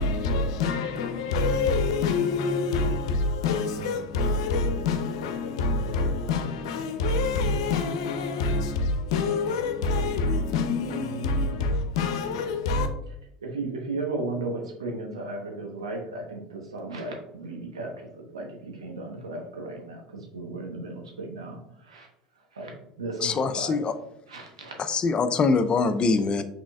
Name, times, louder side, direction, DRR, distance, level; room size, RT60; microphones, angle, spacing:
voice 1, 0.0-12.9, left 3 dB, 75° left, 0.7 m, -26 dB
voice 2, 13.4-22.1 22.5-22.7 23.0-23.8 24.3-24.7, right 2 dB, 90° right, 1.0 m, -35 dB
voice 3, 23.2-24.0 24.8-26.4, left 4 dB, 35° left, 0.5 m, -23 dB
6.0 x 3.5 x 2.3 m
hypercardioid pair, 75°, 3 cm